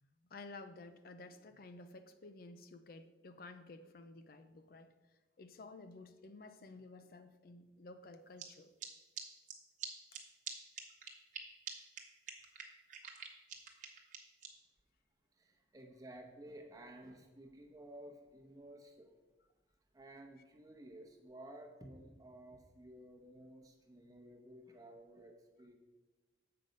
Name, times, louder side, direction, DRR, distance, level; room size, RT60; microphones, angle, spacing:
voice 1, 0.0-4.9 5.4-8.7 10.1-10.2 11.4-11.5, left 3 dB, 55° left, 9 dB, 0.5 m, -53 dB
sound 1, 8.4-8.5 8.8-8.9 9.2-9.3 9.5-9.6 9.8-9.9 10.1-10.2 10.5-10.6 10.8-11.4 11.7-11.8 12.0-12.1 12.3-14.5, right 8 dB, 45° right, 1.0 m, -44 dB
voice 2, 15.4-19.1 19.9-25.7, right 1 dB, 20° right, 2 dB, 0.9 m, -54 dB
7.6 x 5.4 x 5.2 m, 1.2 s
head